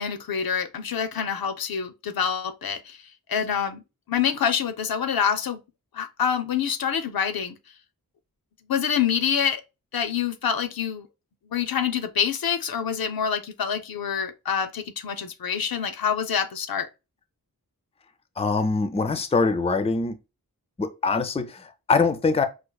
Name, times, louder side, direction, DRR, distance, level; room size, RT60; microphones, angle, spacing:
voice 1, 0.0-3.0 3.3-3.8 4.1-5.6 5.9-7.6 8.7-9.6 9.9-11.1 11.5-16.9, left 7 dB, 80° left, 0.5 m, -26 dB
voice 2, 18.4-20.2 20.8-22.5, left 4 dB, 20° left, 0.4 m, -23 dB
4.6 x 2.4 x 2.2 m
wide cardioid pair, 60°, 35 cm